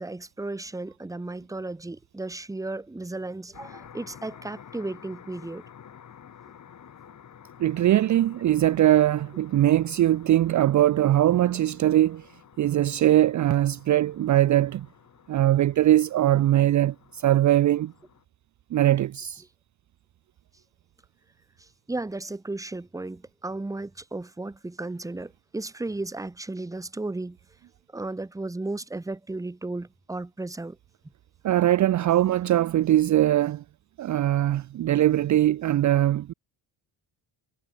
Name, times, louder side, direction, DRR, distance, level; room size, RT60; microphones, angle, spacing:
voice 1, 0.0-5.6 21.6-27.4 27.9-30.8, right 2 dB, 5° right, 1.4 m, -34 dB
sound 1, 3.5-18.2, left 8 dB, 40° left, 5.5 m, -51 dB
voice 2, 7.6-12.3 12.6-14.9 15.3-17.9 18.7-19.4 31.4-33.6 34.0-36.3, right 13 dB, 40° right, 0.7 m, -21 dB
cardioid pair, 160°, 45 cm